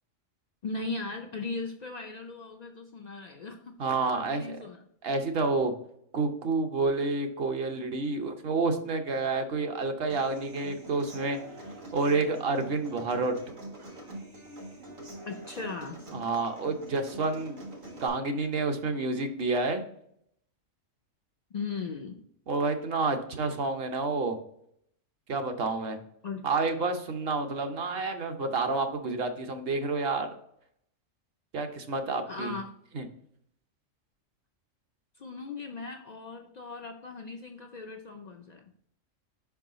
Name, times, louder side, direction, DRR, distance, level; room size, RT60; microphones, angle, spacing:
voice 1, 0.6-3.8 4.1-4.8 15.3-16.0 21.5-22.2 26.2-26.4 32.3-32.7 35.2-38.7, left 4 dB, 75° left, 3 dB, 0.4 m, -38 dB
voice 2, 3.8-4.6 5.0-5.7 6.1-11.4 11.9-13.3 16.1-17.6 18.0-19.8 22.5-24.4 25.3-26.0 26.4-30.3 31.5-32.5 32.9-33.0, right 3 dB, 55° right, 6 dB, 0.9 m, -29 dB
Human voice / Acoustic guitar, 10.1-18.1, right 2 dB, 75° right, 2.0 m, -44 dB
5.4 x 4.7 x 3.8 m, 0.71 s
omnidirectional pair, 1.3 m